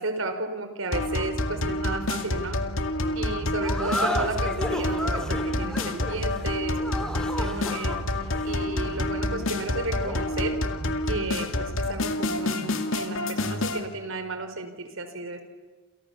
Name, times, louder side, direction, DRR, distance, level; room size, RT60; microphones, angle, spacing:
voice 1, 0.0-2.6 3.1-10.6 11.0-15.4, right 2 dB, 90° right, 8 dB, 4.3 m, -33 dB
sound 1, 0.9-13.8, left 1 dB, 85° left, 2.2 m, -28 dB
sound 2, 3.6-10.3, equal, 5° left, 2.5 m, -34 dB
28.5 x 28.5 x 7.0 m, 1.3 s
head